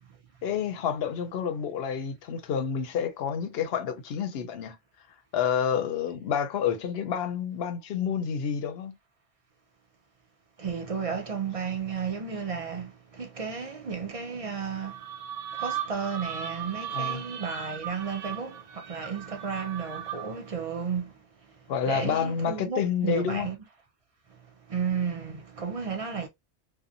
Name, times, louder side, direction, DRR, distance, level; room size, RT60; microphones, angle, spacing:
voice 1, 0.4-4.8 5.3-8.9 16.9-17.2 21.7-23.5, left 7 dB, 65° left, 0.7 m, -29 dB
voice 2, 10.6-15.0 15.6-21.1 21.9-23.6 24.7-26.3, right 6 dB, 50° right, 0.4 m, -33 dB
sound 1, 14.8-20.5, right 9 dB, 90° right, 0.9 m, -37 dB
2.7 x 2.1 x 2.4 m
omnidirectional pair, 1.2 m